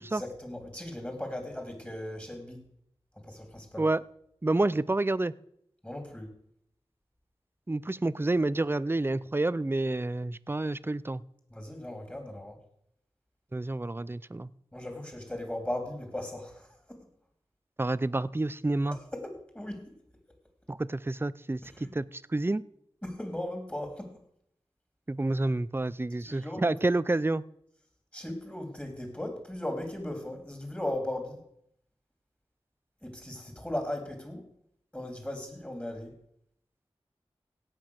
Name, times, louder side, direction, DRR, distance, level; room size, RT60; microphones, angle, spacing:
voice 1, 0.1-2.6 3.1-3.8 5.8-6.3 11.5-12.6 14.7-17.0 18.9-19.9 21.6-21.9 23.0-24.2 26.2-26.9 28.1-31.4 33.0-34.5 34.9-36.1, left 1 dB, 15° left, 3 dB, 3.4 m, -37 dB
voice 2, 4.4-5.3 7.7-11.2 13.5-14.5 17.8-19.0 20.7-22.6 25.1-27.4, right 2 dB, 20° right, 18 dB, 0.5 m, -29 dB
17.0 x 6.0 x 6.5 m, 0.71 s
wide cardioid pair, 45°, 10 cm